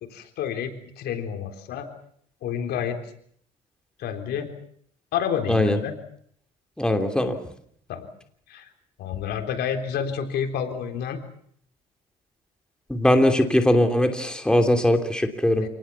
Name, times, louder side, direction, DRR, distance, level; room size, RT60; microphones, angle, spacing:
voice 1, 0.0-1.9 2.4-3.0 4.0-4.5 5.1-5.9 7.9-8.1 8.5-8.7 9.0-11.2 15.6-15.7, left 8 dB, 70° left, 6 dB, 3.9 m, -29 dB
voice 2, 5.5-5.8 6.8-7.4 12.9-15.7, left 1 dB, 5° left, 5 dB, 3.0 m, -20 dB
28.5 x 19.5 x 7.2 m, 0.64 s
cardioid pair, 110°, 17 cm